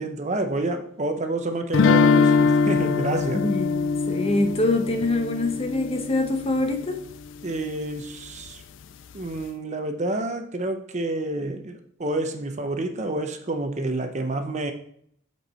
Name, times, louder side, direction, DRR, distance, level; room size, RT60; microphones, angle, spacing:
voice 1, 0.0-3.4 7.4-8.6 9.1-14.7, right 2 dB, 35° right, 6 dB, 0.7 m, -28 dB
sound 1, 1.7-6.7, left 5 dB, 70° left, 0.3 m, -22 dB
voice 2, 3.3-3.8 4.1-7.0, left 2 dB, 30° left, 5 dB, 0.9 m, -24 dB
8.2 x 4.6 x 4.2 m, 0.66 s
head